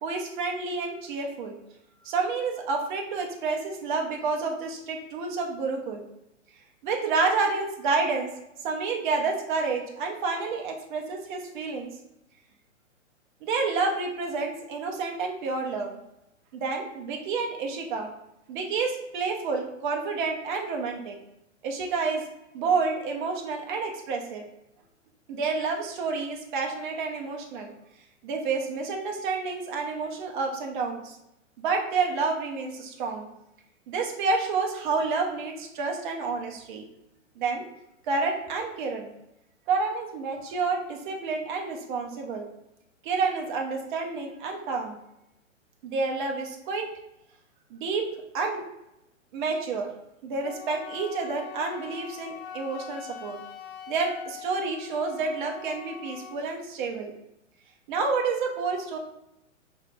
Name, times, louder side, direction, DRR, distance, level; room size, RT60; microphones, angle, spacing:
voice 1, 0.0-1.6 2.0-6.0 6.8-8.3 8.6-11.9 13.4-16.0 16.5-18.1 18.5-21.2 21.6-22.2 22.5-24.4 25.3-27.7 28.2-31.2 31.6-33.3 33.9-36.8 37.4-37.6 38.1-39.1 39.7-42.5 43.0-45.0 45.8-46.9 47.7-48.1 48.3-48.6 49.3-49.9 50.2-53.4 53.9-57.1 57.9-59.0, right 4 dB, 40° right, 2 dB, 0.8 m, -29 dB
Wind instrument woodwind instrument, 50.4-56.5, left 7 dB, 55° left, 0.5 m, -43 dB
5.7 x 2.8 x 2.4 m, 0.87 s
figure-of-eight pair, 120°, 39 cm